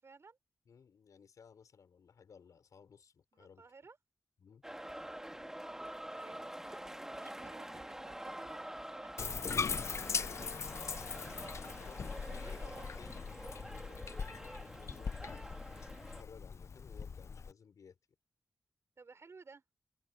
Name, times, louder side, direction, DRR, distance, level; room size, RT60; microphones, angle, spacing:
voice 1, 0.0-0.4 3.3-4.0 5.0-9.1 9.5-10.3 12.2-12.9 19.0-19.6, right 4 dB, 50° right, 6.1 m, -57 dB
voice 2, 0.7-3.6 4.4-4.6 11.7-15.3 16.1-18.0, left 6 dB, 80° left, 5.5 m, -59 dB
sound 1, 4.6-16.2, right 1 dB, 10° right, 1.8 m, -47 dB
Bathtub (filling or washing), 9.2-17.5, left 5 dB, 55° left, 0.6 m, -40 dB
wide cardioid pair, 90°, 6 cm